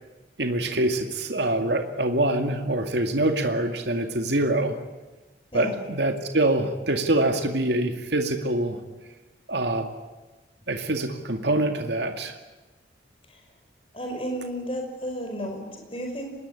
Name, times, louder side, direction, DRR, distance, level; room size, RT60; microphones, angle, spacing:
voice 1, 0.4-4.8 5.5-8.8 9.5-9.9 10.7-12.4, right 1 dB, 75° right, 5 dB, 2.2 m, -25 dB
voice 2, 13.9-16.3, equal, 30° left, 3 dB, 5.7 m, -32 dB
25.0 x 20.5 x 9.9 m, 1.2 s
head